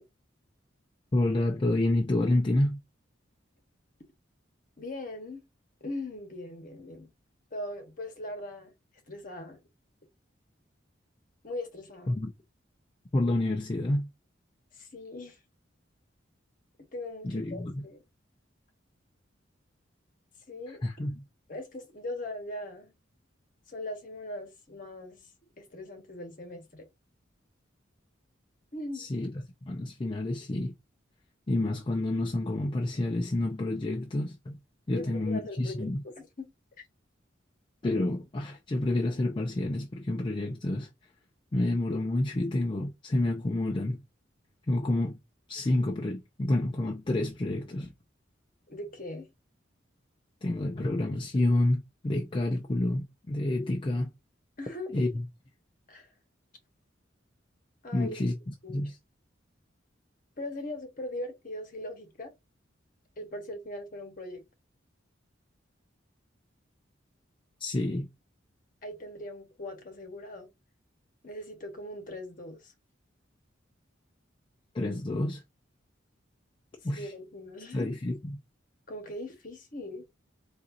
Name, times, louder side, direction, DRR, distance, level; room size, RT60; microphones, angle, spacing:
voice 1, 1.1-2.8 12.1-12.3 13.1-14.1 17.2-17.8 20.8-21.2 28.9-30.7 31.5-34.5 34.9-36.0 37.8-40.9 41.5-44.0 44.7-45.2 45.5-47.9 50.4-54.1 54.9-55.2 57.9-59.0 67.6-68.1 74.7-75.4 76.8-77.1 77.7-78.4, left 1 dB, 25° left, 0.4 m, -29 dB
voice 2, 4.8-5.4 5.8-7.1 7.5-8.7 9.1-9.6 11.4-12.1 14.7-15.4 16.9-18.0 20.5-20.8 21.5-22.9 23.7-25.2 25.6-26.9 28.7-29.1 34.9-36.5 48.7-49.3 54.6-55.0 55.9-56.1 57.8-58.2 58.6-58.8 60.4-62.3 63.2-64.4 68.8-70.5 71.2-72.7 76.9-78.0 78.9-80.0, left 1 dB, 45° left, 1.1 m, -40 dB
4.2 x 2.5 x 2.5 m
head